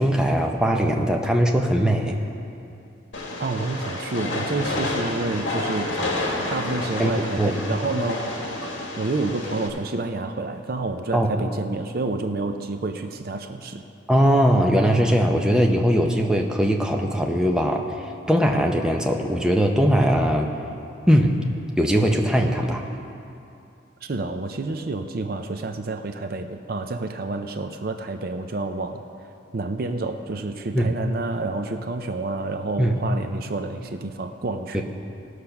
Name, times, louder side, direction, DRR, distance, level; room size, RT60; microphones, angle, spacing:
voice 1, 0.0-2.2 7.0-7.1 7.4-7.6 11.1-11.3 14.1-17.9 18.3-20.5 21.1-21.4 21.8-22.8 30.7-30.9 32.8-32.9 34.7-34.8, equal, 5° right, 1 dB, 0.6 m, -20 dB
Train, 3.1-9.7, left 1 dB, 70° left, 1.6 m, -29 dB
voice 2, 3.4-5.9 6.2-8.3 9.0-13.8 24.0-29.0 29.5-34.8, right 3 dB, 50° right, 6 dB, 0.5 m, -29 dB
18.0 x 6.6 x 5.8 m, 2.6 s
head